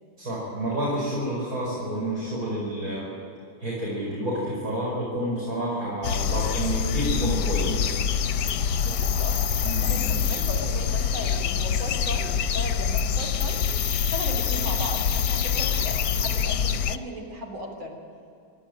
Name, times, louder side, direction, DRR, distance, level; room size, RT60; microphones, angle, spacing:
voice 1, 0.2-3.1 3.6-7.9 9.6-10.0, right 1 dB, 45° right, -6 dB, 5.8 m, -29 dB
sound 1, 6.0-17.0, left 7 dB, 65° left, 1.3 m, -25 dB
voice 2, 8.8-18.0, equal, 85° right, 2 dB, 4.3 m, -37 dB
29.0 x 11.5 x 9.0 m, 2.5 s
omnidirectional pair, 2.2 m